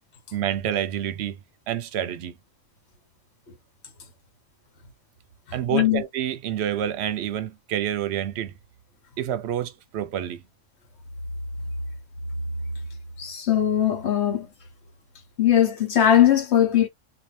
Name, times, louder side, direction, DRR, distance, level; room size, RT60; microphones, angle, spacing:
voice 1, 0.3-1.4 1.7-2.3 5.5-8.5 9.2-10.4, right 10 dB, 65° right, 0.8 m, -28 dB
voice 2, 5.7-6.0 13.2-14.5 15.4-16.9, left 10 dB, 60° left, 1.1 m, -20 dB
2.7 x 2.3 x 3.1 m
omnidirectional pair, 1.3 m